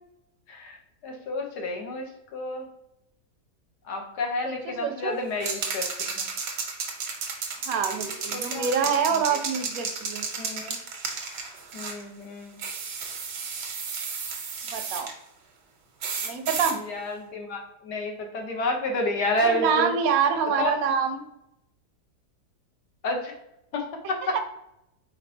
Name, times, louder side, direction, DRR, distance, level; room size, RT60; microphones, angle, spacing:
voice 1, 1.0-2.7 3.9-6.3 8.3-9.4 10.4-10.7 11.7-12.6 16.9-19.9 20.6-20.7 23.0-23.3 23.7-24.4, left 2 dB, 75° left, 2 dB, 1.4 m, -30 dB
voice 2, 4.4-5.2 7.7-10.3 14.7-15.1 16.2-16.8 19.4-21.2 24.3-24.4, right 6 dB, 70° right, 7 dB, 1.0 m, -26 dB
sound 1, 5.4-12.0 12.6-15.1 16.0-16.8, right 5 dB, 90° right, 1.5 m, -33 dB
4.4 x 4.2 x 2.7 m, 0.83 s
omnidirectional pair, 1.8 m